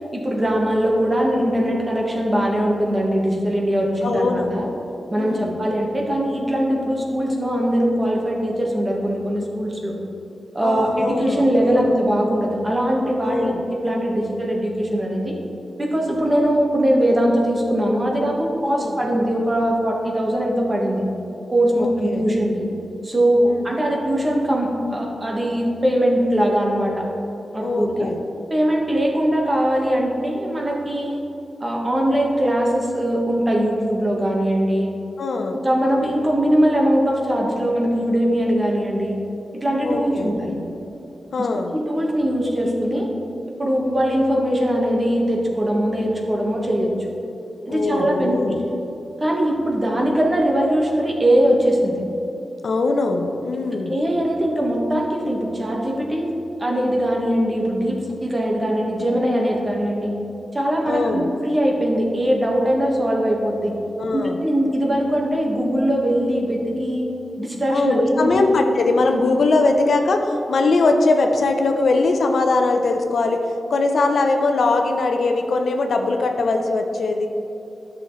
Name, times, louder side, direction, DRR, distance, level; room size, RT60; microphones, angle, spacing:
voice 1, 0.1-4.7 5.1-10.0 10.5-15.4 15.8-21.0 21.5-22.7 23.0-27.1 27.5-28.1 28.5-31.2 31.6-34.9 35.5-39.2 39.5-40.6 41.4-41.5 41.7-43.1 43.6-47.1 47.6-48.5 49.2-52.0 53.9-56.3 56.6-60.1 60.5-63.7 64.1-67.1 67.4-68.3 69.1-69.2, equal, 25° right, -1 dB, 1.5 m, -21 dB
voice 2, 4.0-4.7 5.2-5.6 10.6-11.9 13.2-13.6 18.7-19.0 21.8-22.2 23.5-23.7 27.6-28.2 35.2-35.6 39.8-40.3 41.3-41.7 47.7-48.6 52.6-53.9 60.9-61.3 64.0-64.4 67.7-73.4 73.7-77.3, left 3 dB, 75° left, 4 dB, 0.7 m, -21 dB
10.5 x 6.4 x 3.2 m, 2.9 s
cardioid pair, 85°, 0 cm